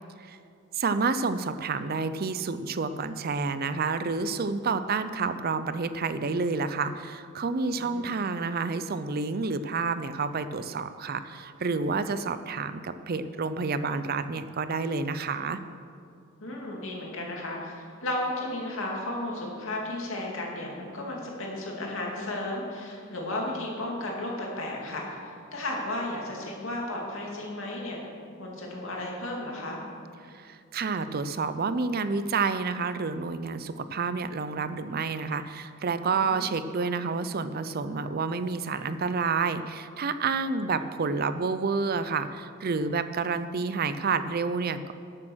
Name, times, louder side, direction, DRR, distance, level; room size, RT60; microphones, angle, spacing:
voice 1, 0.7-15.6 30.3-44.9, right 4 dB, 45° right, 12 dB, 0.5 m, -29 dB
voice 2, 7.7-8.1 16.4-28.0 28.4-29.8 36.3-36.4 40.6-40.9, left 1 dB, 70° left, -2 dB, 2.5 m, -34 dB
12.5 x 7.5 x 6.3 m, 2.4 s
head